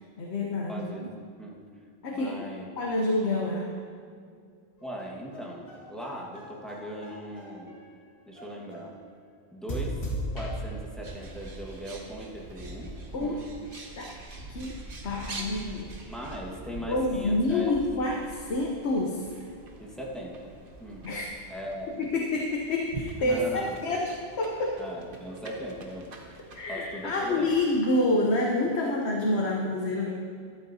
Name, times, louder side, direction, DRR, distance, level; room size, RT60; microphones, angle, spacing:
voice 1, 0.2-1.1 2.0-2.3 2.8-3.7 13.1-13.4 14.0-14.2 14.5-14.8 15.0-16.1 16.9-19.2 21.0-21.3 22.0-24.1 24.4-24.8 26.6-30.1, left 2 dB, 80° left, -1 dB, 1.2 m, -28 dB
voice 2, 0.7-1.0 1.4-1.6 2.1-2.7 4.8-7.8 8.3-9.0 9.5-10.0 10.3-12.9 13.2-13.4 14.6-14.7 16.1-17.7 19.8-21.1 21.5-22.0 23.2-23.7 24.8-26.2 26.7-27.5, equal, ahead, -3 dB, 1.5 m, -39 dB
sound 1, 4.8-7.8 8.4-9.0 9.7-10.7, equal, 60° left, 2.1 m, -37 dB
Bird, 11.0-27.8, right 2 dB, 55° right, 1.2 m, -44 dB
13.5 x 11.5 x 2.8 m, 2.3 s
omnidirectional pair, 1.1 m